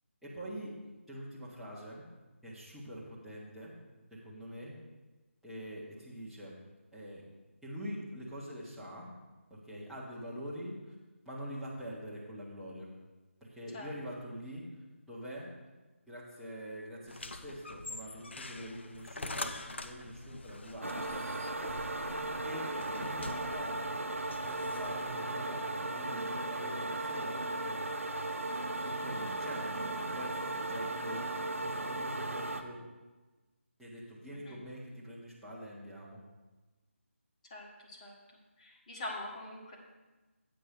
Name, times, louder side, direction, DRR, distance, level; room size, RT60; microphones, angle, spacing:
voice 1, 0.2-0.7 1.1-2.1 2.4-3.7 4.1-4.7 5.4-6.6 6.9-7.2 7.6-9.1 9.5-10.9 11.2-12.9 13.4-14.6 15.1-15.5 16.1-21.2 22.4-24.0 24.4-27.8 28.8-32.8 33.8-36.2, equal, ahead, -10 dB, 1.2 m, -45 dB
sound 1, 17.1-25.2, left 2 dB, 55° left, 0.6 m, -45 dB
sound 2, 20.8-32.6, right 2 dB, 75° right, 0.9 m, -36 dB
voice 2, 37.5-38.1 38.6-39.8, left 1 dB, 30° left, -2 dB, 1.7 m, -43 dB
8.5 x 5.3 x 6.5 m, 1.2 s
figure-of-eight pair, 155°, 7 cm